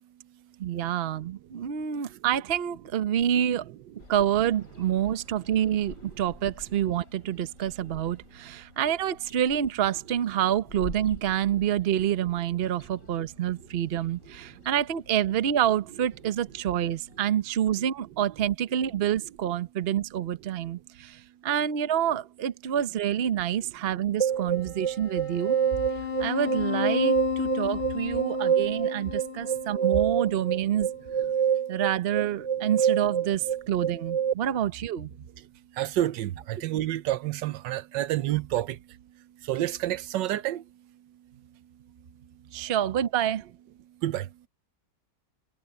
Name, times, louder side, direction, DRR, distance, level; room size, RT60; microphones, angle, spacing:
voice 1, 0.6-3.7 4.1-25.6 26.2-30.9 31.7-35.1 42.5-43.4, right 10 dB, 45° right, 0.8 m, -27 dB
sound 1, 4.0-17.3, left 2 dB, 45° left, 4.9 m, -49 dB
sound 2, 24.2-34.3, right 5 dB, 30° left, 1.7 m, -27 dB
voice 2, 35.7-39.0 39.4-40.7 44.0-44.3, right 13 dB, 85° right, 1.4 m, -29 dB
omnidirectional pair, 1.9 m